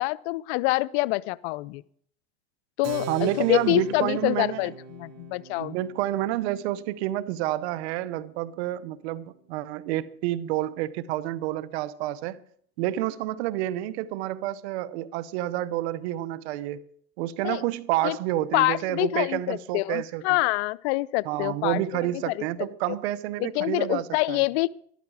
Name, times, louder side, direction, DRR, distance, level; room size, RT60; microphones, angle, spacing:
voice 1, 0.0-1.8 2.8-5.8 17.4-17.6 18.0-18.2 18.5-21.8 22.3-23.0 23.4-24.7, left 21 dB, 90° left, 0.5 m, -26 dB
Keyboard (musical), 2.8-9.0, right 3 dB, 55° right, 1.6 m, -41 dB
voice 2, 3.1-4.7 5.6-12.4 12.8-16.8 17.2-20.2 21.2-24.4, right 14 dB, 90° right, 0.8 m, -29 dB
13.5 x 12.0 x 4.7 m
supercardioid pair, 80°, 32 cm